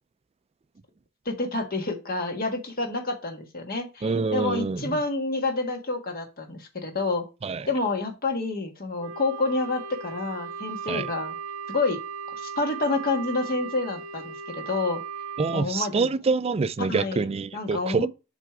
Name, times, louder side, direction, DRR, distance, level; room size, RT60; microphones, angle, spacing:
voice 1, 1.2-7.2 7.7-11.3 11.7-12.0 12.3-15.0 15.5-16.1 16.8-17.2 17.5-18.1, left 3 dB, 45° left, 1.7 m, -28 dB
voice 2, 4.0-5.0 7.4-7.7 10.9-11.1 15.4-18.1, right 4 dB, 30° right, 0.3 m, -26 dB
Wind instrument woodwind instrument, 9.0-15.7, right 6 dB, 80° right, 0.5 m, -37 dB
7.6 x 3.4 x 4.8 m
head